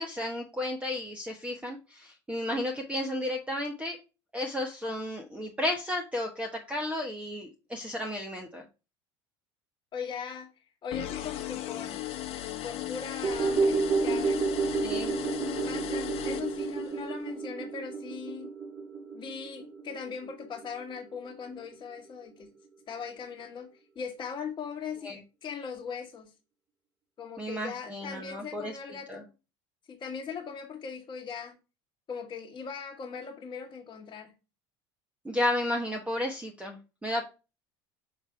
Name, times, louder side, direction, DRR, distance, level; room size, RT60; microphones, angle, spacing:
voice 1, 0.0-4.0 4.3-8.6 14.8-15.1 25.0-25.2 27.4-28.7 29.1-29.2 35.2-37.2, left 1 dB, 10° right, 1.0 m, -33 dB
voice 2, 9.9-10.5 10.8-12.0 12.6-15.0 15.6-18.5 19.1-22.5 22.9-23.7 23.9-26.3 27.2-29.3 29.9-31.6 32.1-34.3, left 6 dB, 35° left, 1.3 m, -40 dB
sound 1, 10.9-17.1, left 13 dB, 55° left, 1.1 m, -37 dB
sound 2, 13.2-21.7 22.0-22.1, right 4 dB, 30° right, 2.0 m, -31 dB
6.6 x 3.3 x 4.3 m
hypercardioid pair, 85°, 13 cm